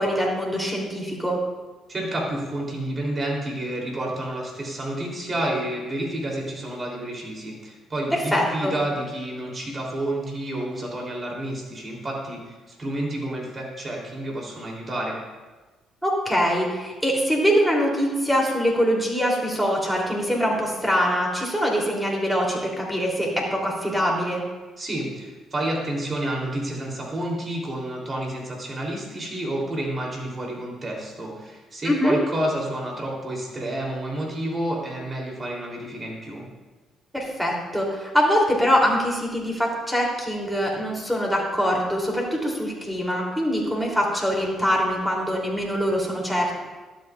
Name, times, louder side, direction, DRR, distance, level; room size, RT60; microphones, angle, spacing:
voice 1, 0.0-1.4 8.1-8.7 16.0-24.4 31.8-32.2 37.1-46.6, equal, ahead, -2 dB, 2.9 m, -23 dB
voice 2, 1.9-15.2 24.8-36.4, right 1 dB, 35° right, -2 dB, 3.0 m, -30 dB
12.0 x 8.4 x 2.4 m, 1.2 s
supercardioid pair, 60°, 0 cm